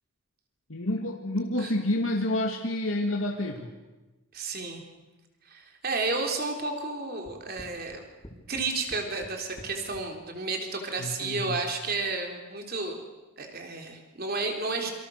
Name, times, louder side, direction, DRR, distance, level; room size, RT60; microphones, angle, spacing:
voice 1, 0.7-3.7 11.0-11.6, left 1 dB, 80° left, 1 dB, 2.1 m, -29 dB
voice 2, 4.3-4.8 5.5-8.0 8.5-13.0 13.4-14.9, right 3 dB, 45° right, 3 dB, 3.7 m, -32 dB
sound 1, 7.3-10.1, equal, 15° left, 4.5 m, -46 dB
27.5 x 24.5 x 6.6 m, 1.1 s
head